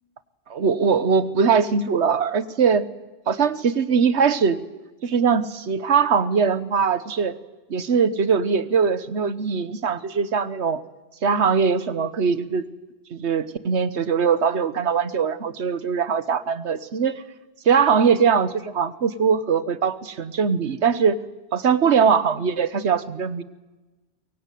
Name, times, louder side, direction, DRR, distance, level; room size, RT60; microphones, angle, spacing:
voice 1, 0.5-2.8 3.3-4.6 5.0-7.4 7.7-10.8 11.2-12.7 13.1-17.2 17.6-21.2 21.5-23.4, right 6 dB, 90° right, 15 dB, 1.4 m, -21 dB
23.5 x 22.5 x 9.3 m, 1.1 s
omnidirectional pair, 1.1 m